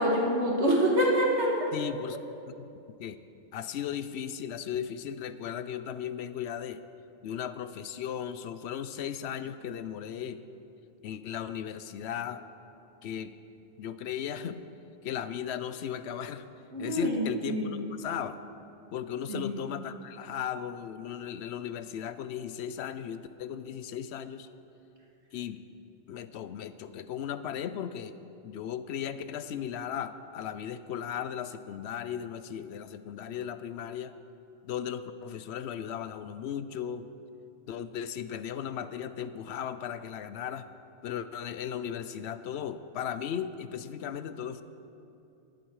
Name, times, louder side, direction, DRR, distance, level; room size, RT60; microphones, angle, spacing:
voice 1, 0.0-1.7 16.7-17.8 19.3-19.7, equal, 85° right, -2 dB, 2.4 m, -26 dB
voice 2, 1.7-2.2 2.5-2.7 3.0-3.2 3.5-6.8 7.2-10.4 11.0-12.4 13.0-13.3 13.8-14.6 15.0-16.4 16.8-18.4 18.9-24.5 25.3-25.6 26.1-28.2 28.4-34.1 34.6-37.1 37.7-40.7 41.0-44.6, left 9 dB, 75° left, 13 dB, 0.8 m, -36 dB
19.5 x 7.9 x 4.7 m, 2.7 s
omnidirectional pair, 1.1 m